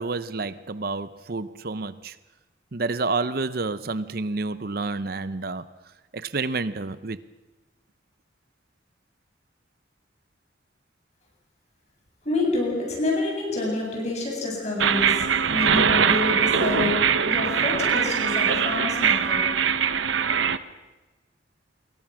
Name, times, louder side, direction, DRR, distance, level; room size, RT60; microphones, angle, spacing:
voice 1, 0.0-2.2 2.7-5.7 6.1-7.2, right 3 dB, 50° right, 0.7 m, -29 dB
voice 2, 12.2-19.4, left 2 dB, 35° left, 7.9 m, -28 dB
sound 1, 14.8-20.6, right 7 dB, 80° right, 1.0 m, -22 dB
28.5 x 22.0 x 6.3 m
head